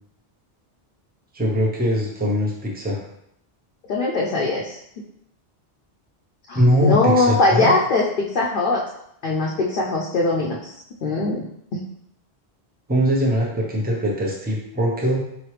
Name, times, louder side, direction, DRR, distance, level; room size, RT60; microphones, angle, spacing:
voice 1, 1.3-3.0 6.5-7.7 12.9-15.2, equal, 10° right, -2 dB, 0.6 m, -21 dB
voice 2, 3.9-4.8 6.5-8.8 9.2-10.7 11.0-11.4 11.7-11.8, left 2 dB, 60° left, -3 dB, 0.7 m, -21 dB
4.3 x 3.0 x 3.2 m, 0.76 s
omnidirectional pair, 1.0 m